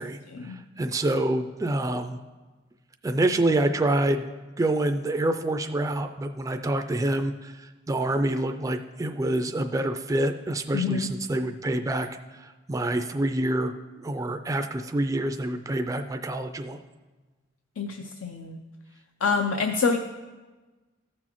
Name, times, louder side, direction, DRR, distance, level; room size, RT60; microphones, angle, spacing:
voice 1, 0.0-2.2 3.0-16.8, right 1 dB, 15° right, 6 dB, 0.3 m, -27 dB
voice 2, 10.7-11.1 17.8-18.6 19.2-20.0, left 5 dB, 85° left, 5 dB, 0.5 m, -26 dB
14.5 x 6.2 x 3.0 m, 1.2 s
head